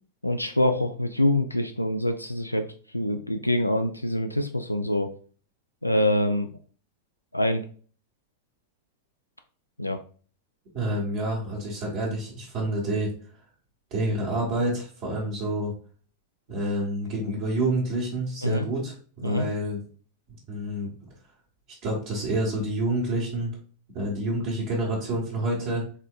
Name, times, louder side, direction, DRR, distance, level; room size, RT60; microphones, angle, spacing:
voice 1, 0.2-2.7 2.9-5.1 5.8-6.5 7.3-7.6 9.8-10.0 18.4-18.7 19.2-19.5, left 1 dB, 85° left, 6 dB, 0.3 m, -25 dB
voice 2, 10.7-13.1 13.9-15.7 16.5-19.8 20.5-21.1 21.8-23.5 23.9-25.8, right 1 dB, 45° right, -4 dB, 1.5 m, -28 dB
4.2 x 3.6 x 2.3 m, 0.41 s
figure-of-eight pair, 90°, 0 cm